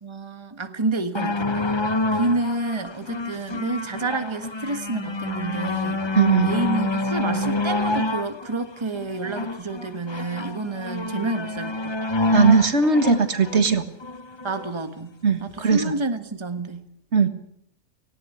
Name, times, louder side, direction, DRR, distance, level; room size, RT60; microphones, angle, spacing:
voice 1, 0.0-1.7 2.1-6.0 6.4-12.0 14.4-16.8, right 2 dB, 20° right, 8 dB, 1.5 m, -29 dB
sound 1, 1.2-14.7 15.5-15.6, left 2 dB, 25° left, 0.9 m, -27 dB
voice 2, 6.1-6.5 12.3-13.8 15.2-15.9 17.1-17.3, right 5 dB, 60° right, 9 dB, 1.9 m, -19 dB
18.5 x 17.5 x 9.8 m, 0.70 s
omnidirectional pair, 1.3 m